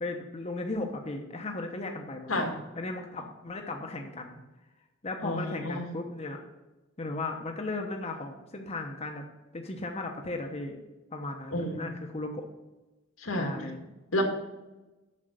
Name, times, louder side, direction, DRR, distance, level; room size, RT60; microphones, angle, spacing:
voice 1, 0.0-2.4 2.8-4.4 5.0-6.4 7.0-9.3 9.5-10.8 11.1-12.5 13.4-13.9, left 2 dB, 30° left, 2 dB, 0.9 m, -36 dB
voice 2, 5.2-5.9 11.5-11.9 13.2-13.7 14.1-14.2, left 1 dB, 85° left, 3 dB, 2.0 m, -30 dB
7.5 x 6.5 x 8.0 m, 1.1 s
head